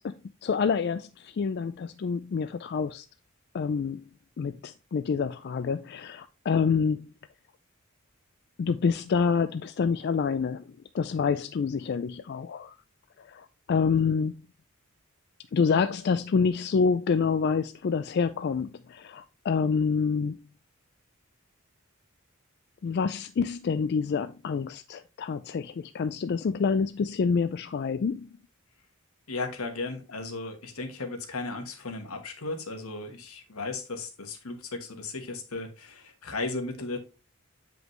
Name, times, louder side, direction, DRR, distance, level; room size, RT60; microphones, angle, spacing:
voice 1, 0.4-3.1 3.5-4.0 4.4-7.1 8.6-10.6 10.9-12.7 13.2-14.4 15.5-20.4 22.8-28.3, left 5 dB, 50° left, 0.3 m, -27 dB
voice 2, 29.3-37.0, left 3 dB, 85° left, 1.3 m, -35 dB
7.9 x 5.1 x 3.1 m
head